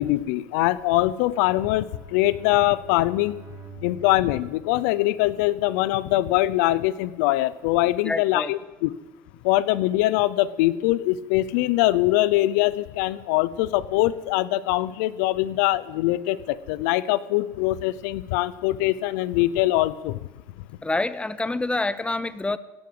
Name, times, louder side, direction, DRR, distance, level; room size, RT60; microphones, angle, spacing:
voice 1, 0.0-3.4 3.8-8.9 9.4-20.2, left 16 dB, 80° left, 18 dB, 0.7 m, -23 dB
Bowed string instrument, 1.2-5.6, right 5 dB, 35° right, 3.9 m, -47 dB
voice 2, 8.0-8.5 20.8-22.6, left 2 dB, 10° left, 16 dB, 0.8 m, -27 dB
16.5 x 9.7 x 7.9 m, 1.1 s
supercardioid pair, 100°, 9 cm